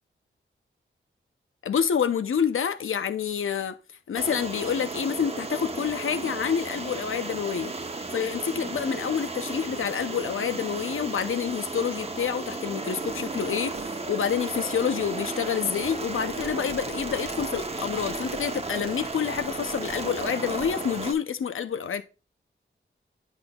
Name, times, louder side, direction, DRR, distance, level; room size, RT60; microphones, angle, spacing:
voice 1, 1.6-3.8 4.1-7.7 8.1-22.0, left 7 dB, 85° left, 0.6 m, -28 dB
sound 1, 4.1-21.1, right 3 dB, 30° right, 0.8 m, -34 dB
9.8 x 5.3 x 2.3 m
wide cardioid pair, 85°, 21 cm